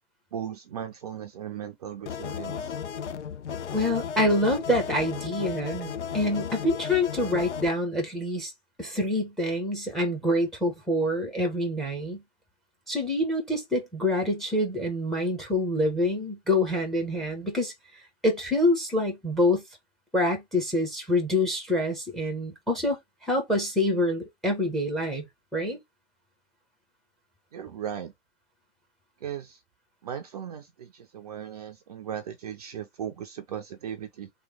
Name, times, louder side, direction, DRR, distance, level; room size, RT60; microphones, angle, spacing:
voice 1, 0.3-2.8 27.5-28.1 29.2-29.6 30.0-34.3, right 9 dB, 35° right, 0.5 m, -37 dB
sound 1, 2.1-7.7, left 7 dB, 75° left, 0.5 m, -34 dB
voice 2, 3.7-8.5 8.8-12.2 12.9-17.7 18.2-19.6 20.1-25.3 25.5-25.8, left 1 dB, ahead, 0.7 m, -26 dB
3.3 x 3.2 x 3.2 m
figure-of-eight pair, 125°, 36 cm